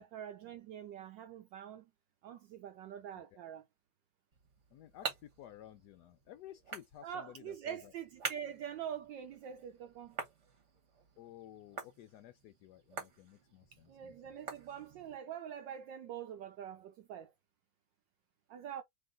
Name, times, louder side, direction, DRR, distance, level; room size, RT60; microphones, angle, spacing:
voice 1, 0.0-1.9 2.2-3.6 7.0-10.2 13.9-17.3 18.5-18.8, right 9 dB, 70° right, 1.2 m, -45 dB
sound 1, 4.3-15.2, right 5 dB, 40° right, 1.2 m, -47 dB
voice 2, 4.7-7.9 11.2-14.3, left 12 dB, 80° left, 0.9 m, -54 dB
3.2 x 3.0 x 3.7 m
omnidirectional pair, 2.3 m